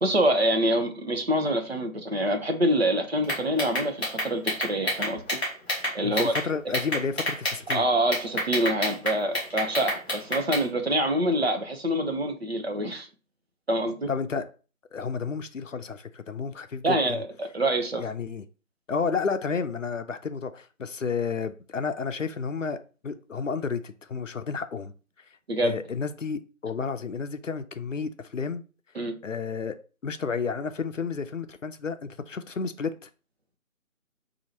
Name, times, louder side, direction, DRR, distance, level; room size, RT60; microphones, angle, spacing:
voice 1, 0.0-5.2 5.9-6.3 7.7-13.1 13.7-14.1 16.8-18.0 25.5-25.7 28.9-29.1, right 1 dB, 50° right, 0.9 m, -26 dB
sound 1, 3.3-6.4 6.7-7.8 8.1-10.6, left 1 dB, 5° left, 1.1 m, -28 dB
voice 2, 6.0-7.8 14.1-14.5 14.9-17.2 18.0-18.4 18.9-24.9 25.6-28.6 29.2-29.8 30.0-33.1, left 5 dB, 65° left, 0.6 m, -31 dB
3.9 x 2.8 x 4.3 m
figure-of-eight pair, 155°, 41 cm